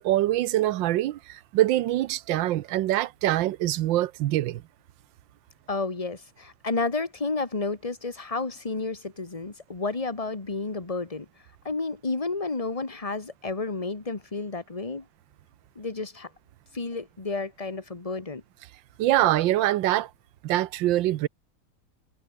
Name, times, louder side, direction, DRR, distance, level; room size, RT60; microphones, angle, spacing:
voice 1, 0.0-4.6 19.0-20.1 20.4-21.3, right 14 dB, 70° right, 1.3 m, -24 dB
voice 2, 5.7-11.3 11.7-15.0 15.8-16.3 16.7-18.4, left 3 dB, 15° left, 1.8 m, -31 dB
omnidirectional pair, 2.3 m